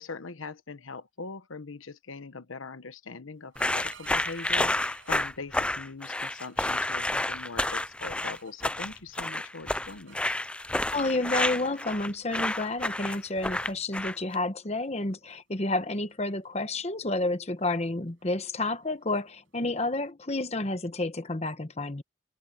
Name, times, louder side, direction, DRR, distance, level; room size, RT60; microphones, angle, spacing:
voice 1, 0.0-10.2, left 4 dB, 80° left, 1.1 m, -41 dB
sound 1, 3.3-5.5 6.0-9.0 9.3-10.8 11.7-11.9 12.2-12.5 13.0-13.3 13.6-13.8 14.1-14.4 14.6-20.0, right 7 dB, 75° right, 5.7 m, -57 dB
sound 2, 3.6-14.3, left 1 dB, 5° left, 0.3 m, -30 dB
voice 2, 10.9-22.0, left 2 dB, 30° left, 1.1 m, -30 dB
head